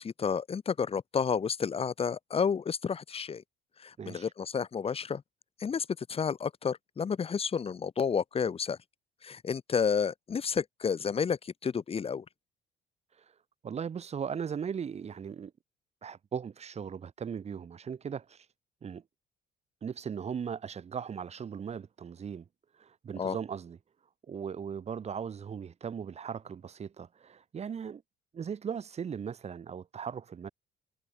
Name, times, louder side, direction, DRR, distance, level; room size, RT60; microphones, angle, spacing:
voice 1, 0.0-3.4 3.8-5.2 5.6-8.8 9.2-12.2 23.2-23.4, left 6 dB, 35° left, 3.3 m, -31 dB
voice 2, 13.6-15.5 16.0-18.5 18.8-19.0 19.8-22.5 22.8-23.8 24.3-28.0 28.3-30.5, right 7 dB, 40° right, 4.3 m, -38 dB
cardioid pair, 110°, 17 cm